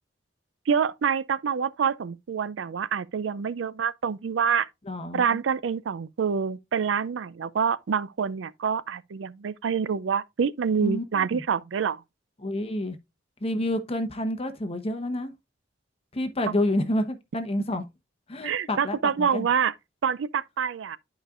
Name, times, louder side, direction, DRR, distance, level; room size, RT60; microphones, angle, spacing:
voice 1, 0.7-4.7 5.1-12.0 18.4-19.7 20.0-21.0, right 6 dB, 85° right, 0.4 m, -26 dB
voice 2, 4.9-5.4 10.8-11.4 12.4-13.0 13.4-15.3 16.1-17.8 18.3-19.5, left 1 dB, 35° left, 1.0 m, -29 dB
11.0 x 5.1 x 2.4 m
head